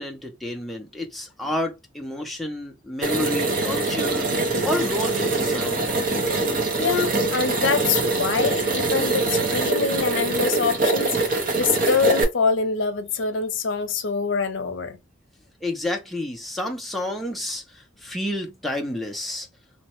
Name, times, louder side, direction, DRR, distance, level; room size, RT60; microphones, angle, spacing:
voice 1, 0.0-4.3 4.6-5.9 15.6-19.5, left 1 dB, ahead, 0.5 m, -30 dB
sound 1, 3.0-12.2, right 3 dB, 45° right, 0.7 m, -23 dB
voice 2, 6.8-15.0, left 5 dB, 75° left, 0.6 m, -25 dB
3.1 x 2.1 x 2.9 m
head